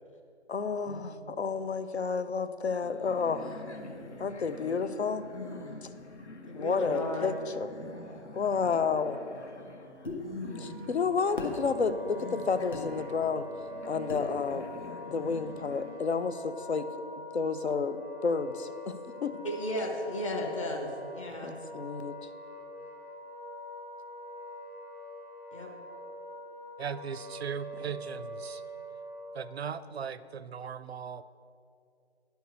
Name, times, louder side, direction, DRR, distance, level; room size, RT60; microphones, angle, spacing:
voice 1, 0.5-3.6 4.2-5.3 5.8-5.9 6.5-7.7 8.3-9.2 10.6-14.7 15.0-16.9 17.3-19.4 21.4-22.3, left 5 dB, 70° left, 11 dB, 0.7 m, -31 dB
sound 1, 2.8-16.0, left 2 dB, 85° left, 1.0 m, -46 dB
voice 2, 6.5-7.4 19.4-21.6 25.5-25.7, left 1 dB, 30° left, 0 dB, 0.9 m, -34 dB
sound 2, 10.1-10.2 11.4-11.6 12.7-12.9 14.1-14.3, left 3 dB, 50° left, 1.6 m, -36 dB
Wind instrument woodwind instrument, 10.4-29.6, equal, 15° left, 0.5 m, -44 dB
voice 3, 26.8-28.6 29.3-31.2, right 7 dB, 65° right, 16 dB, 0.5 m, -38 dB
10.5 x 4.6 x 7.7 m, 2.5 s
figure-of-eight pair, 150°, 34 cm